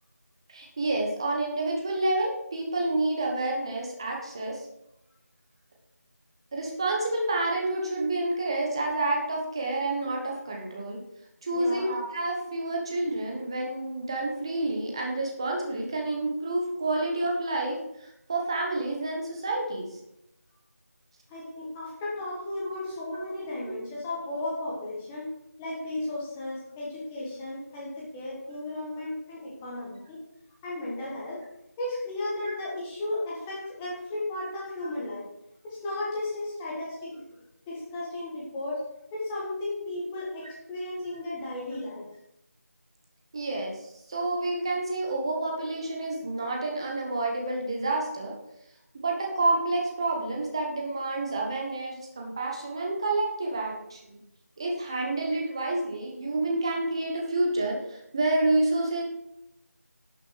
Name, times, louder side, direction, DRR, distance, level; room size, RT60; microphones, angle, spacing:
voice 1, 0.5-4.7 6.5-11.0 11.4-20.0 22.9-23.0 23.6-23.8 32.4-32.5 41.1-41.2 43.3-48.4 48.9-54.2 54.6-59.0, right 2 dB, 20° right, 0 dB, 1.1 m, -29 dB
voice 2, 11.5-11.9 21.3-25.3 25.6-30.2 30.6-31.4 31.8-35.2 35.6-37.2 37.7-38.8 39.1-42.1, left 2 dB, 5° left, -6 dB, 1.2 m, -34 dB
11.5 x 6.8 x 4.6 m, 0.83 s
figure-of-eight pair, 170°, 9 cm